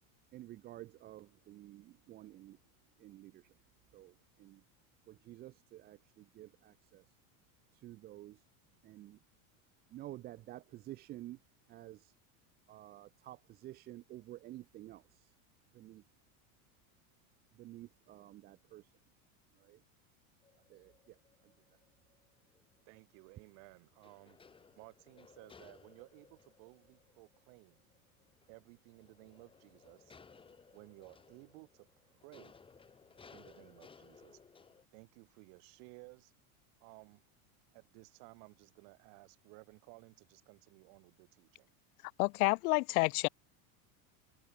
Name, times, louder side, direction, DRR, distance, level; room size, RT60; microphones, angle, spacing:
voice 1, 0.3-2.6 3.0-3.5 3.9-4.6 5.1-7.0 7.7-8.4 8.8-9.2 9.9-11.4 11.7-12.1 12.7-15.3 15.7-16.0 17.5-18.9 19.5-19.8 20.7-21.2 21.4-21.5, right 15 dB, 20° right, 0.7 m, -51 dB
sound 1, 20.4-23.4 23.8-34.9, left 5 dB, 10° left, 6.6 m, -61 dB
voice 2, 22.9-27.9 28.5-30.1 30.7-32.6 33.3-34.4 34.9-36.3 36.8-37.2 37.7-41.8, right 40 dB or more, 50° right, 7.3 m, -57 dB
voice 3, 42.2-43.3, left 23 dB, 75° left, 0.6 m, -29 dB
supercardioid pair, 175°, 43 cm